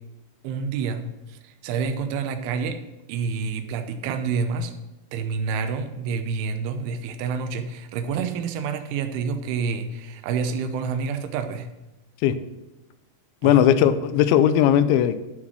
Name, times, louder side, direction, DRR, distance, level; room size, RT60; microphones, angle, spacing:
voice 1, 0.4-1.0 1.3-2.8 3.1-4.8 5.1-11.7 13.4-13.7, right 5 dB, 90° right, 8 dB, 3.3 m, -28 dB
voice 2, 13.4-15.2, left 10 dB, 85° left, 12 dB, 3.0 m, -18 dB
11.5 x 6.1 x 6.2 m, 1.0 s
omnidirectional pair, 5.3 m